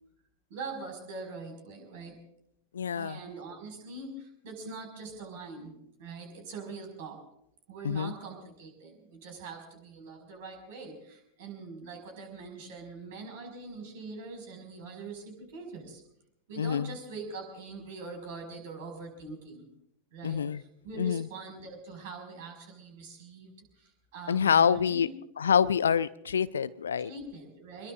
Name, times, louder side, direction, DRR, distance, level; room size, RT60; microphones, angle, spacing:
voice 1, 0.5-2.2 2.9-5.7 6.0-7.2 7.7-16.0 16.5-19.7 20.1-25.1 27.0-27.9, right 3 dB, 50° right, 3 dB, 5.6 m, -43 dB
voice 2, 2.7-3.2 7.8-8.1 16.6-16.9 20.2-20.6 21.0-21.3 24.3-25.1 25.4-27.1, left 7 dB, 70° left, 18 dB, 0.5 m, -26 dB
25.5 x 21.5 x 2.5 m, 0.77 s
figure-of-eight pair, 90°, 0 cm